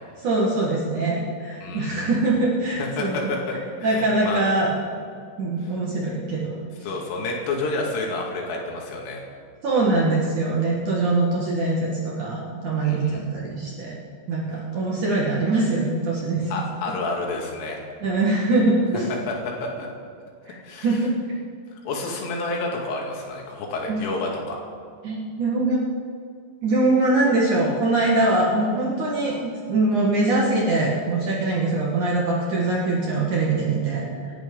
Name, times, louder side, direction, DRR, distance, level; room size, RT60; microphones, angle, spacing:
voice 1, 0.2-3.3 3.8-4.7 5.4-6.5 9.6-13.9 14.3-16.4 18.0-19.1 20.5-20.6 20.8-21.1 23.9-24.0 25.0-25.8 26.6-34.0, right 2 dB, 50° right, -4 dB, 2.7 m, -23 dB
voice 2, 1.6-2.1 2.8-4.5 6.8-9.2 12.8-13.2 16.5-17.8 19.3-19.9 20.6-21.0 21.8-24.6, left 2 dB, 80° left, -1 dB, 4.7 m, -29 dB
27.5 x 11.5 x 3.9 m, 2.2 s
omnidirectional pair, 5.7 m